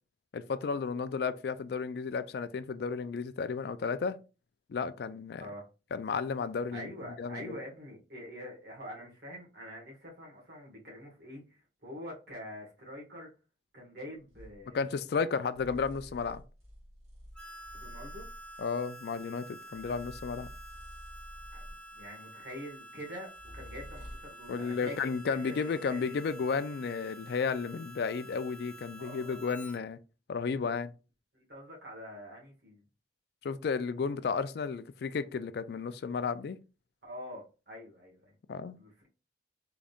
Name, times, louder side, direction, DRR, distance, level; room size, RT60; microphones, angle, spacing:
voice 1, 0.3-4.2 4.7-5.4 5.9-6.9 7.2-7.5 14.7-16.4 18.6-20.5 24.5-30.0 30.3-30.9 33.4-36.6 38.5-38.8, left 5 dB, 65° left, 0.3 m, -33 dB
voice 2, 6.7-13.3 13.7-14.9 17.7-18.3 21.5-24.9 25.3-26.1 29.0-29.5 31.3-32.8 37.0-38.3 38.8-39.1, equal, 65° right, 1.8 m, -45 dB
sound 1, 14.3-14.6 15.5-18.5 19.7-22.0 23.3-24.4, equal, 40° right, 1.7 m, -49 dB
Harmonica, 17.3-29.8, right 1 dB, 5° left, 0.5 m, -49 dB
3.8 x 3.5 x 2.4 m
head